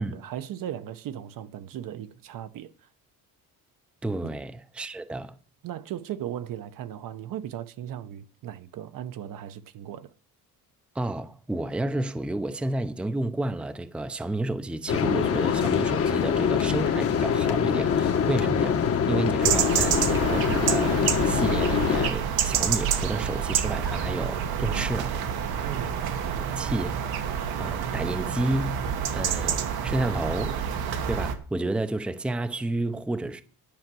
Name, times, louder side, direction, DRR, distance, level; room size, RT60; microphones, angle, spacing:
voice 1, 0.0-2.7 4.2-4.3 5.6-10.1 25.6-25.9, right 10 dB, 65° right, 0.8 m, -37 dB
voice 2, 4.0-5.4 10.9-25.1 26.6-27.0 27.6-28.8 29.1-30.6 31.1-33.4, right 2 dB, 5° right, 0.5 m, -30 dB
sound 1, 14.9-22.1, left 7 dB, 40° left, 1.0 m, -24 dB
sound 2, 19.4-31.3, right 8 dB, 90° right, 1.4 m, -28 dB
10.5 x 5.8 x 7.6 m
cardioid pair, 140°, 36 cm